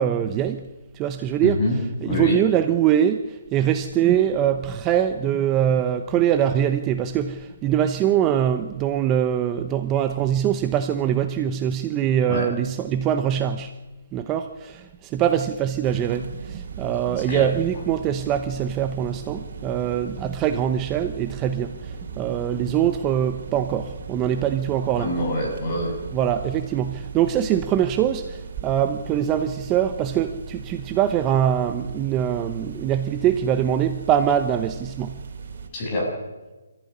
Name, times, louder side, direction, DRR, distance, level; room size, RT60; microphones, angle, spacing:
voice 1, 0.0-1.6 2.1-13.8 14.1-25.1 26.1-35.3, right 10 dB, 15° right, 8 dB, 0.8 m, -23 dB
voice 2, 1.4-1.8 2.0-2.4 12.3-12.5 17.2-17.5 25.0-25.9 35.7-36.1, left 1 dB, 25° left, 0 dB, 7.6 m, -25 dB
sound 1, 15.8-35.7, right 6 dB, 50° right, 3.8 m, -38 dB
26.5 x 15.0 x 9.9 m, 1.2 s
hypercardioid pair, 165°, 0 cm